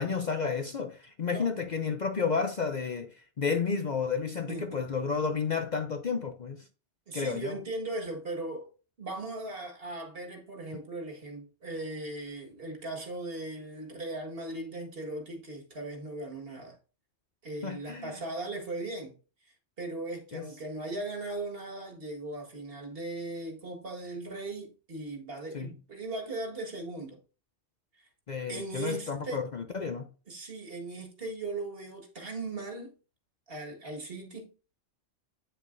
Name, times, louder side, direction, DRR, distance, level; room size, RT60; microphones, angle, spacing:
voice 1, 0.0-6.6 7.1-7.6 17.6-18.2 20.3-20.5 25.5-25.7 28.3-30.1, left 5 dB, 45° left, 0.7 m, -31 dB
voice 2, 4.5-4.8 7.1-8.7 9.0-16.8 17.4-19.2 19.5-27.2 27.9-28.1 28.5-29.5 30.3-32.9 33.5-34.5, right 2 dB, 55° right, 1.9 m, -38 dB
9.1 x 6.7 x 2.6 m
omnidirectional pair, 1.2 m